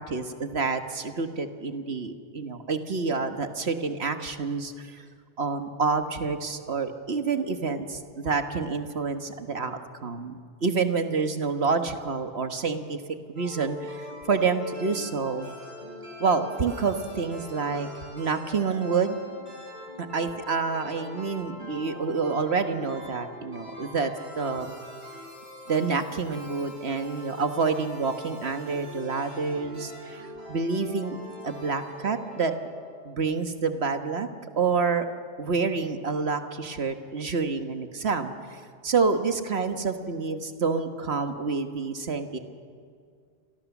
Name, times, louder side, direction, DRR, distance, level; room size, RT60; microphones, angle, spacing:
voice 1, 0.0-5.0 5.4-13.0 13.3-15.5 16.2-19.2 20.0-24.1 24.4-24.7 25.7-31.2 31.4-32.5 33.0-34.3 34.6-35.1 35.4-38.3 38.8-42.4, right 4 dB, 70° right, 7 dB, 1.6 m, -28 dB
sound 1, 13.4-33.3, left 1 dB, 45° right, 7.5 m, -43 dB
29.5 x 24.0 x 7.2 m, 2.2 s
omnidirectional pair, 1.1 m